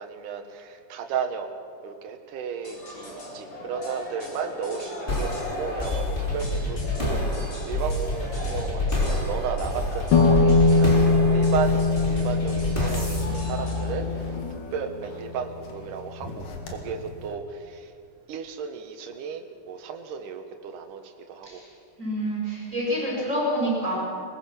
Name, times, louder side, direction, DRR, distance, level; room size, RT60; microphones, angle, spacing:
voice 1, 0.0-1.5 1.8-5.3 5.6-11.0 11.3-14.3 14.7-17.9 18.3-21.6, right 7 dB, 70° right, 5 dB, 2.8 m, -34 dB
sound 1, 2.6-14.4, left 1 dB, 50° left, 5.3 m, -39 dB
sound 2, 5.1-14.5, left 1 dB, 15° left, 2.7 m, -28 dB
sound 3, 10.1-15.7 16.2-17.1, left 3 dB, 70° left, 3.5 m, -23 dB
voice 2, 22.0-24.0, equal, 20° right, -5 dB, 6.3 m, -27 dB
22.0 x 20.5 x 6.0 m, 2.3 s
omnidirectional pair, 4.0 m